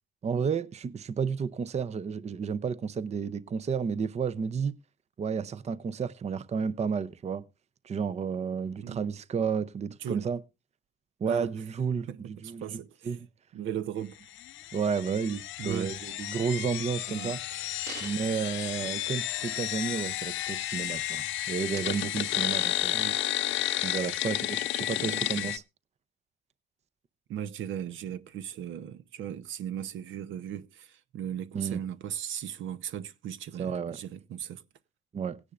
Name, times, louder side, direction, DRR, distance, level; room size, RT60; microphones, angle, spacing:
voice 1, 0.2-4.7 5.2-7.5 7.8-10.4 11.2-12.1 12.4-12.8 13.1-13.3 14.7-17.4 18.0-23.0 23.8-25.6 31.5-31.8 33.6-34.0 35.1-35.4, right 6 dB, 35° right, 0.5 m, -31 dB
voice 2, 12.1-13.2 13.5-14.2 15.6-15.9 17.1-17.4 22.9-23.2 25.0-25.5 27.3-34.6, right 10 dB, 75° right, 0.7 m, -37 dB
sound 1, 14.4-25.6, left 13 dB, 75° left, 0.5 m, -32 dB
sound 2, 17.7-19.7 20.1-20.3 20.6-21.2 21.5-23.2 23.8-23.9, right 4 dB, 55° right, 2.1 m, -48 dB
18.0 x 9.8 x 2.4 m
cardioid pair, 90°, 20 cm